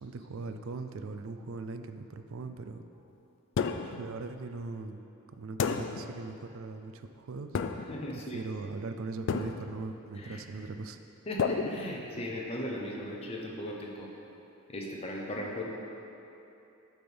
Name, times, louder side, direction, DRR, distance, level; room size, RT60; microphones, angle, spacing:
voice 1, 0.0-2.8 3.8-5.0 5.3-7.5 7.8-11.0, right 3 dB, 65° right, 8 dB, 0.4 m, -40 dB
sound 1, 3.6-4.1 5.6-6.2 7.5-8.1 9.3-9.9 11.4-12.4, left 5 dB, 55° left, 0.3 m, -32 dB
voice 2, 7.9-8.4 10.2-10.4 11.3-14.1 14.7-15.6, equal, 30° left, -2 dB, 0.8 m, -37 dB
8.6 x 3.5 x 6.0 m, 2.9 s
head